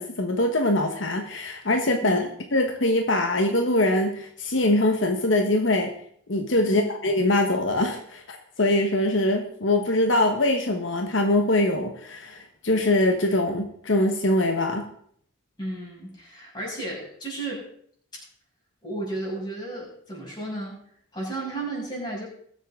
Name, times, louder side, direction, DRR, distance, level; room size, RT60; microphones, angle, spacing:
voice 1, 0.0-2.2 2.5-5.9 6.3-14.9, left 1 dB, 80° left, 4 dB, 1.4 m, -23 dB
voice 2, 15.6-17.7 18.1-18.2 18.8-20.8 21.1-22.3, right 2 dB, 20° left, -5 dB, 6.5 m, -33 dB
21.0 x 8.3 x 3.8 m, 0.63 s
head